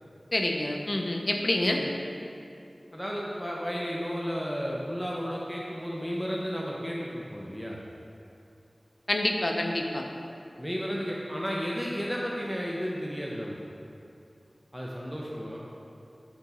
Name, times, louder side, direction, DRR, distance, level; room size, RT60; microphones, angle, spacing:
voice 1, 0.3-1.8 9.1-10.0, left 1 dB, 50° left, 2 dB, 0.6 m, -27 dB
voice 2, 2.9-7.8 10.6-13.6 14.7-15.6, equal, ahead, -4 dB, 0.6 m, -33 dB
6.9 x 4.0 x 4.2 m, 2.6 s
wide cardioid pair, 60°, 0 cm